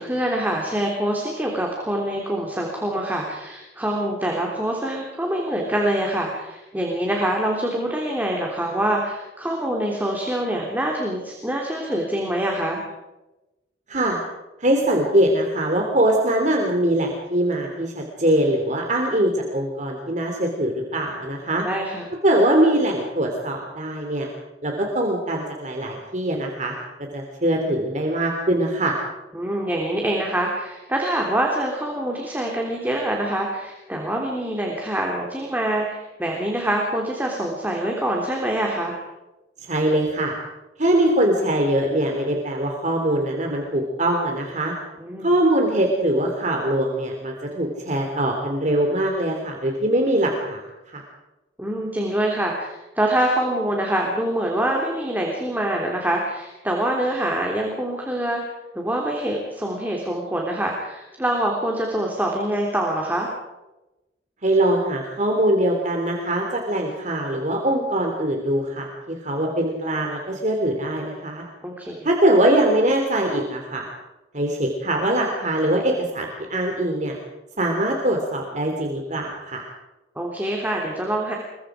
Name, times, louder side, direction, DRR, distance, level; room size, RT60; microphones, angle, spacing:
voice 1, 0.0-12.8 21.6-22.1 29.3-39.0 45.0-45.4 51.6-58.4 58.7-63.3 71.6-72.1 80.1-81.3, right 1 dB, 10° right, -1 dB, 3.4 m, -25 dB
voice 2, 13.9-14.2 14.6-21.6 22.2-24.3 24.6-26.7 27.1-28.9 39.7-40.3 40.8-44.7 45.2-50.6 50.9-51.0 64.4-71.4 72.0-73.9 74.3-77.2 77.6-79.6, right 1 dB, 40° right, 1 dB, 3.3 m, -22 dB
27.0 x 23.5 x 5.1 m, 1.0 s
head